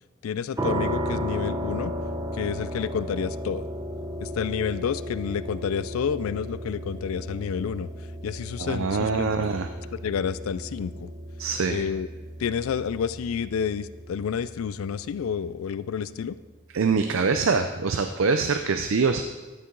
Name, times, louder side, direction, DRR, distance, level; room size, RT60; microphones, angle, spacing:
voice 1, 0.2-1.9 2.3-3.7 4.2-7.9 8.2-9.5 9.9-11.1 11.7-12.1 12.4-16.4, left 7 dB, 80° left, 16 dB, 0.4 m, -29 dB
sound 1, 0.6-15.4, equal, 15° right, 0.8 m, -34 dB
voice 2, 8.6-9.7 11.4-11.8 16.7-19.2, right 4 dB, 65° right, 7 dB, 0.5 m, -24 dB
13.0 x 6.8 x 3.8 m, 1.2 s
head